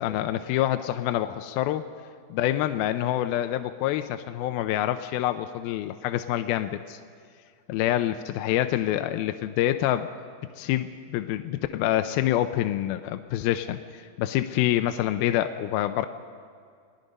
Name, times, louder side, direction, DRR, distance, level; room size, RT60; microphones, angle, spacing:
voice 1, 0.0-1.8 2.3-7.0 7.7-10.1 10.6-16.1, left 13 dB, 80° left, 8 dB, 2.2 m, -26 dB
29.5 x 19.0 x 5.4 m, 2.2 s
omnidirectional pair, 4.9 m